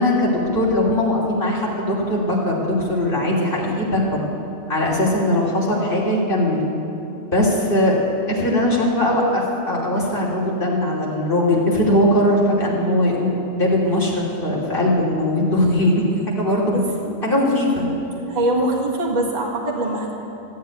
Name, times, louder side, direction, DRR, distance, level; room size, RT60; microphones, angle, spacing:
voice 1, 0.0-4.2 4.7-6.7 7.3-8.0 8.3-16.8 17.2-17.9, left 1 dB, 40° left, -4 dB, 3.2 m, -20 dB
voice 2, 16.7-17.2 18.3-20.1, right 1 dB, 30° right, -3 dB, 1.8 m, -23 dB
14.0 x 8.6 x 9.4 m, 2.8 s
omnidirectional pair, 1.4 m